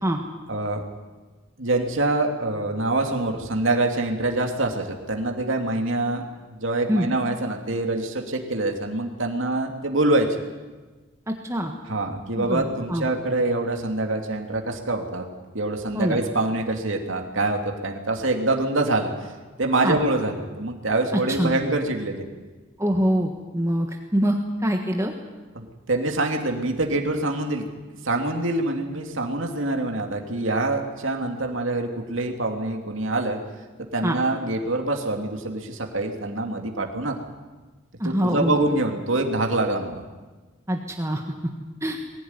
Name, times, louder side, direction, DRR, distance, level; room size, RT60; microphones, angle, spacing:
voice 1, 0.5-0.8 1.6-10.4 11.9-15.3 15.5-19.1 19.6-22.2 25.5-27.6 28.0-33.4 33.9-37.2 38.0-40.0, right 2 dB, 65° right, 3 dB, 2.7 m, -25 dB
voice 2, 11.3-11.7 12.4-12.6 12.9-13.1 15.9-16.2 19.8-20.0 21.4-21.5 22.8-23.9 24.1-24.4 24.6-25.1 34.0-34.2 38.0-38.6 40.7-41.2 41.8-42.0, equal, 15° right, 2 dB, 1.5 m, -24 dB
21.5 x 16.0 x 9.7 m, 1.3 s
head